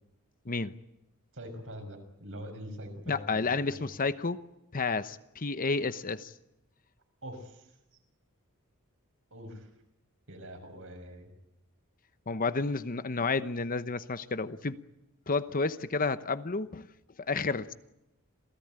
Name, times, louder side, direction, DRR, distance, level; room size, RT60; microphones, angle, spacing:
voice 1, 1.3-3.6 7.2-7.7 9.3-9.7 10.3-11.3, equal, 65° right, 5 dB, 6.0 m, -44 dB
voice 2, 3.1-4.4 4.7-6.3 12.3-14.8 15.3-16.9 17.2-17.7, left 4 dB, 40° left, 13 dB, 1.0 m, -31 dB
27.5 x 17.0 x 9.0 m, 0.87 s
head